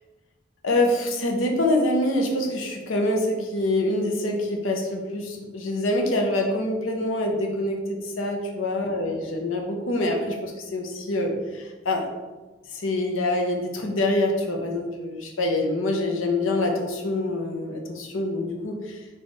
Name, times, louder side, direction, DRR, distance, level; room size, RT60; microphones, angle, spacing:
voice 1, 0.6-12.1 12.7-19.0, left 1 dB, 85° left, 2 dB, 0.8 m, -25 dB
4.2 x 2.5 x 4.6 m, 1.3 s
head